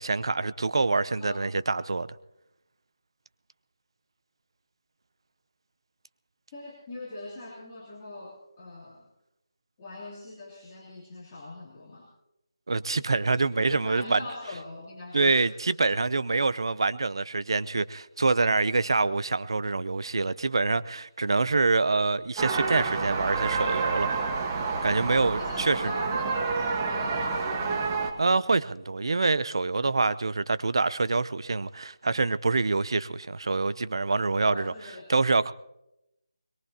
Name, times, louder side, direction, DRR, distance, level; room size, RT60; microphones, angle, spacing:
voice 1, 0.0-2.1 12.7-14.2 15.1-24.1 24.8-25.8 28.2-34.7 35.1-35.5, right 3 dB, 60° right, 0.7 m, -26 dB
voice 2, 6.5-9.0 9.8-12.1 13.3-13.4 13.7-15.6 25.4-26.5 26.8-27.9 34.4-35.1, left 2 dB, 20° left, 3.1 m, -41 dB
sound 1, 22.4-28.1, right 4 dB, 20° right, 1.3 m, -29 dB
22.5 x 22.0 x 2.9 m
figure-of-eight pair, 170°, 3 cm